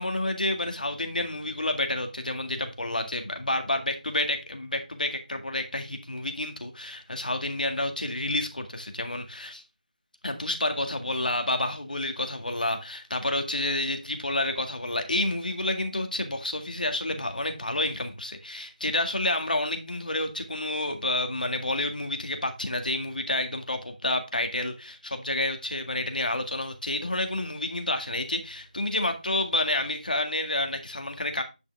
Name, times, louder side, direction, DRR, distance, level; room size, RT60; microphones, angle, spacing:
voice 1, 0.0-9.6 10.2-31.4, left 1 dB, 75° left, 1.8 m, -29 dB
9.1 x 5.6 x 3.5 m
figure-of-eight pair, 165°, 5 cm